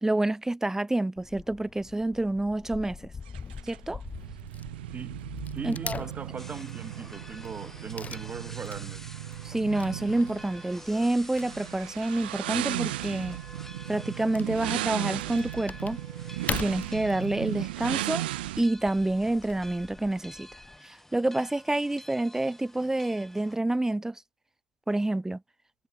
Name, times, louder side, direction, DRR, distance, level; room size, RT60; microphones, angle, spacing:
voice 1, 0.0-3.0 3.6-4.0 5.6-6.0 9.4-13.4 13.9-16.0 16.5-18.3 18.6-20.5 20.8-24.2 24.9-25.4, right 2 dB, 10° right, 0.9 m, -28 dB
Wood / Tearing, 1.2-20.8, left 5 dB, 30° left, 1.1 m, -43 dB
sound 1, 3.3-18.6, right 16 dB, 75° right, 0.5 m, -36 dB
voice 2, 4.9-5.2 5.5-9.0, right 5 dB, 30° right, 1.2 m, -40 dB
sound 2, 6.4-23.6, left 1 dB, 5° left, 4.0 m, -49 dB
hypercardioid pair, 60°, 5 cm